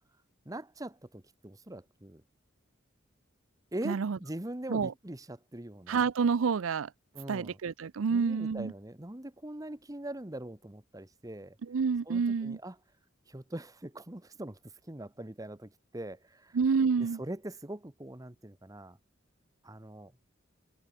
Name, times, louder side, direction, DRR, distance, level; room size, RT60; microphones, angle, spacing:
voice 1, 0.4-2.2 3.7-6.0 7.1-7.6 8.1-11.6 12.1-12.8 13.3-14.6 14.9-16.6 17.0-19.0 19.6-20.1, right 1 dB, 20° right, 1.2 m, -42 dB
voice 2, 3.8-4.2 4.7-4.9 5.9-6.9 7.3-8.7 11.7-12.6 16.5-17.2, right 5 dB, 90° right, 0.5 m, -28 dB
head